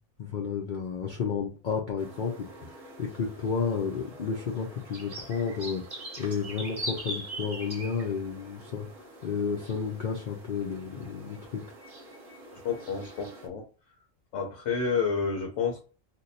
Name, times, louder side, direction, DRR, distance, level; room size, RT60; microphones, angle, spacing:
voice 1, 0.2-11.6, left 6 dB, 55° left, 0 dB, 0.6 m, -32 dB
sound 1, 2.0-13.5, right 1 dB, 35° right, 0.8 m, -43 dB
voice 2, 12.5-13.7 14.3-15.8, left 5 dB, 70° left, 2 dB, 1.0 m, -30 dB
2.6 x 2.2 x 4.0 m, 0.34 s
omnidirectional pair, 1.3 m